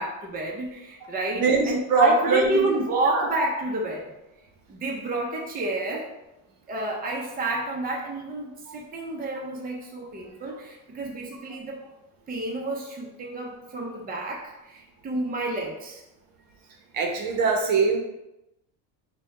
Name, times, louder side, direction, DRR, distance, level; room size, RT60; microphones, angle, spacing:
voice 1, 0.0-4.1 4.7-6.1 6.7-11.8 12.3-16.0, right 2 dB, 20° right, -1 dB, 0.7 m, -30 dB
voice 2, 1.4-2.6 3.1-3.3 8.7-8.8 16.9-18.0, right 4 dB, 50° right, 2 dB, 0.9 m, -22 dB
4.1 x 2.3 x 4.1 m, 0.92 s
supercardioid pair, 100°, 42 cm